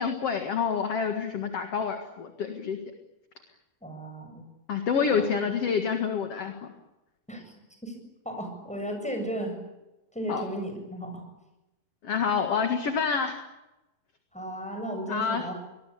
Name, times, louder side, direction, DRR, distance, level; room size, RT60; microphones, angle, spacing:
voice 1, 0.0-2.8 4.7-6.6 10.3-10.4 12.0-13.4 15.1-15.4, left 6 dB, 50° left, 5 dB, 2.4 m, -27 dB
voice 2, 3.8-4.4 5.1-5.2 7.3-7.5 7.8-7.9 8.2-9.6 10.1-11.2 14.3-15.5, right 1 dB, ahead, 4 dB, 7.1 m, -34 dB
26.0 x 20.5 x 8.7 m, 0.99 s
omnidirectional pair, 4.3 m